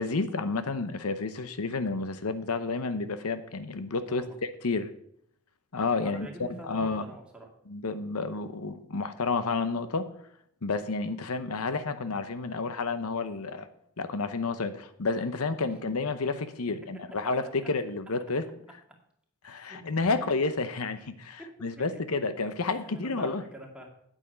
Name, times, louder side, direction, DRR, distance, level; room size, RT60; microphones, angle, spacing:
voice 1, 0.0-4.2 4.6-4.9 5.7-7.0 7.7-10.1 10.6-13.7 14.0-18.4 19.4-23.4, left 3 dB, 80° left, 11 dB, 0.8 m, -30 dB
voice 2, 6.0-7.5 16.7-16.8 18.5-18.6 19.4-20.0 21.4-21.5 21.8-22.0 22.9-23.9, right 1 dB, 5° right, 0 dB, 2.1 m, -46 dB
9.0 x 8.8 x 5.7 m, 0.70 s
head